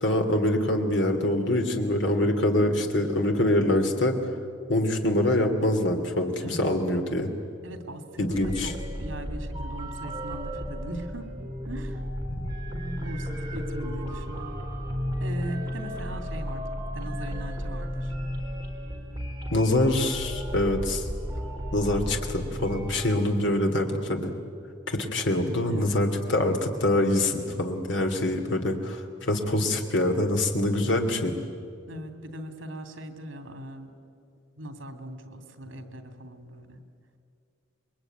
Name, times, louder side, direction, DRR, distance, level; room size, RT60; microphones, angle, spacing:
voice 1, 0.0-4.1 4.7-7.3 8.2-8.7 12.3-12.5 19.5-21.0 21.7-24.3 24.9-31.3, left 1 dB, 70° left, 4 dB, 2.8 m, -25 dB
voice 2, 6.4-6.7 7.6-8.7 9.0-11.3 11.6-12.0 12.7-14.5 15.2-16.6 16.9-18.1 25.7-26.0 31.9-33.9 34.6-36.8, right 1 dB, 85° right, 6 dB, 3.0 m, -39 dB
sound 1, 8.3-23.1, equal, 20° right, 2.8 m, -34 dB
27.0 x 22.0 x 9.3 m, 2.5 s
head